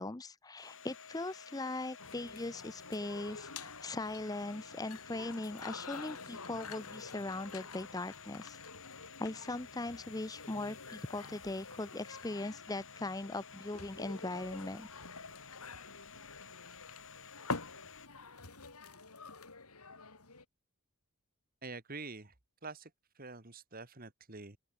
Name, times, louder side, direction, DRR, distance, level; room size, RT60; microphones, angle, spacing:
voice 1, 0.0-8.6 9.2-14.9, left 2 dB, 15° left, 0.6 m, -40 dB
Domestic sounds home sounds, 0.6-18.1, left 6 dB, 60° left, 4.9 m, -53 dB
sound 1, 2.0-20.4, left 4 dB, 85° left, 4.8 m, -48 dB
voice 2, 21.6-22.3 22.6-22.9 23.2-24.6, right 3 dB, 40° right, 2.1 m, -46 dB
open air
head